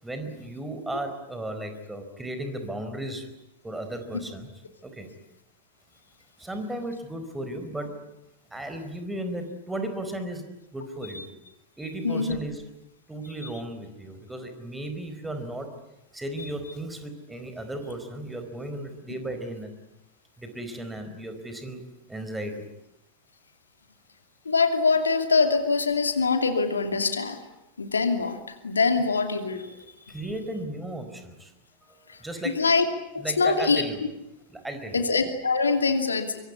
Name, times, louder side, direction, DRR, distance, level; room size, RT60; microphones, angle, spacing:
voice 1, 0.0-3.3 3.6-4.5 4.8-5.1 6.4-7.9 8.5-10.4 10.7-11.3 11.8-12.6 13.1-15.7 16.1-19.7 20.4-21.8 22.1-22.7 30.1-31.5 32.0-32.6 33.2-34.0 34.5-35.1, right 1 dB, 5° right, 7 dB, 4.6 m, -35 dB
voice 2, 12.0-12.4 24.5-27.4 27.8-28.4 28.6-29.7 32.4-32.8 33.1-33.8 34.9-36.4, left 4 dB, 75° left, 7 dB, 2.6 m, -23 dB
24.5 x 24.5 x 9.6 m, 0.88 s
figure-of-eight pair, 90°, 0 cm